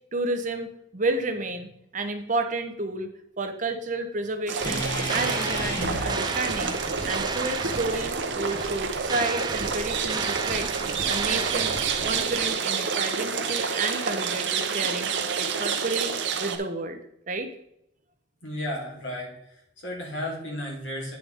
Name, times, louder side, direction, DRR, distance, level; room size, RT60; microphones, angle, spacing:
voice 1, 0.1-3.1 3.4-6.8 7.0-10.8 11.1-11.7 12.0-15.1 15.4-16.1 16.4-17.0 17.3-17.5, right 2 dB, 40° right, 6 dB, 0.9 m, -31 dB
sound 1, 4.5-16.6, right 6 dB, 70° right, 0.9 m, -29 dB
sound 2, 4.6-8.8, equal, 20° left, 2.0 m, -35 dB
sound 3, 4.6-12.5, right 4 dB, 20° right, 0.4 m, -34 dB
voice 2, 18.4-21.2, left 1 dB, 75° left, -3 dB, 3.6 m, -34 dB
9.3 x 6.8 x 3.5 m, 0.77 s
head